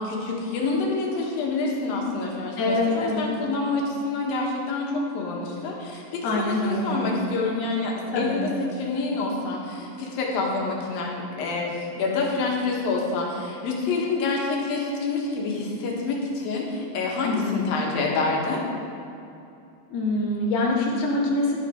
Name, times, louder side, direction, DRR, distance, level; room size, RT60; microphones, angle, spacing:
voice 1, 0.0-8.5 8.8-18.6, left 3 dB, 85° left, -2 dB, 3.1 m, -27 dB
voice 2, 2.6-3.3 6.2-7.2 8.1-8.4 17.2-17.7 19.9-21.6, left 2 dB, 55° left, -3 dB, 2.2 m, -25 dB
11.5 x 7.1 x 5.1 m, 2.6 s
omnidirectional pair, 4.0 m